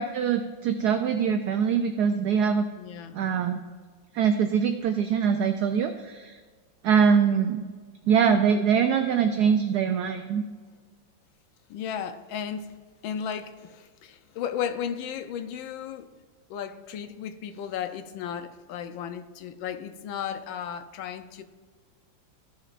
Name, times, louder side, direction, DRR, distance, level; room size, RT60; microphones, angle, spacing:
voice 1, 0.0-2.6 3.1-3.6 4.1-6.4 6.8-7.6 8.1-10.4, right 7 dB, 70° right, 6 dB, 1.0 m, -23 dB
voice 2, 2.7-3.2 11.7-12.7 13.0-16.1 16.5-21.4, left 8 dB, 80° left, 9 dB, 1.4 m, -34 dB
14.5 x 7.1 x 2.5 m, 1.5 s
omnidirectional pair, 2.1 m